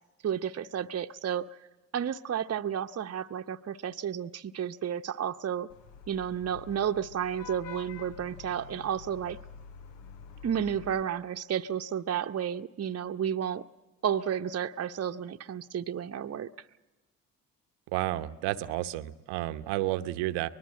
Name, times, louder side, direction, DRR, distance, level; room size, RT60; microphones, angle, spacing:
voice 1, 0.2-1.5 1.9-5.7 6.1-9.4 10.4-13.6 14.0-16.5, right 9 dB, 35° right, 7 dB, 0.8 m, -32 dB
Vehicle horn car horn honking / Traffic noise roadway noise, 5.7-11.0, left 6 dB, 80° left, 1.0 m, -47 dB
voice 2, 17.9-20.5, right 15 dB, 80° right, 12 dB, 0.9 m, -31 dB
24.5 x 20.0 x 7.6 m, 1.1 s
hypercardioid pair, 45°, 43 cm